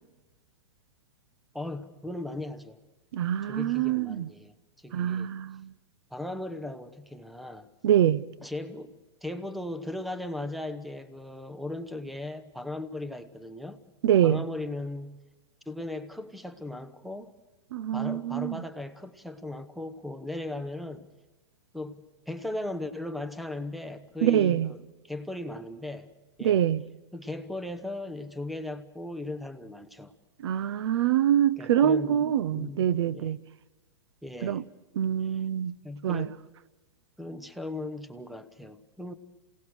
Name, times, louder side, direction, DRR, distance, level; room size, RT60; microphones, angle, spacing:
voice 1, 1.5-2.8 3.5-4.5 4.8-5.3 6.1-7.7 8.4-8.9 9.2-13.8 14.2-15.2 15.7-17.3 17.9-21.1 21.7-24.8 25.0-26.1 26.4-26.6 27.1-30.1 31.6-32.9 33.1-33.3 34.2-34.6 35.2-35.4 35.8-36.4 37.2-39.1, left 2 dB, ahead, 0.9 m, -37 dB
voice 2, 3.1-4.3 4.9-5.7 7.8-8.2 14.0-14.4 17.7-18.6 24.2-24.7 26.4-26.8 30.4-33.4 34.4-34.6 35.0-35.8 36.0-36.3, right 10 dB, 70° right, 0.6 m, -25 dB
27.5 x 18.0 x 6.4 m
hypercardioid pair, 135°, 14 cm